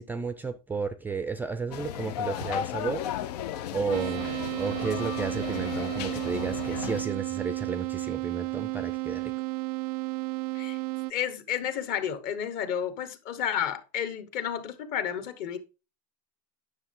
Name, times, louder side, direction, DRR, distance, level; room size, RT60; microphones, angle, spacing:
voice 1, 0.0-3.0 3.7-4.3 4.6-9.3, right 5 dB, 10° right, 0.4 m, -33 dB
sound 1, 1.7-7.0, left 11 dB, 85° left, 0.9 m, -34 dB
sound 2, 3.9-11.1, right 23 dB, 70° right, 0.4 m, -33 dB
voice 2, 11.1-15.6, left 9 dB, 45° left, 1.4 m, -31 dB
9.6 x 6.7 x 3.7 m
supercardioid pair, 155°, 20 cm